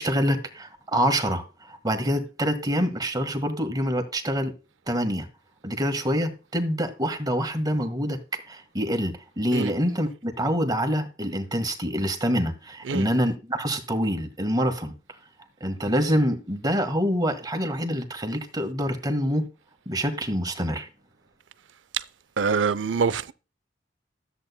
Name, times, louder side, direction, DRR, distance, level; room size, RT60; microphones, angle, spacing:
voice 1, 0.0-4.5 4.9-5.3 5.6-14.9 15.6-19.5 19.8-20.9, equal, 20° right, 1.6 m, -26 dB
voice 2, 22.4-23.3, right 5 dB, 90° right, 0.6 m, -24 dB
13.5 x 8.2 x 2.2 m
head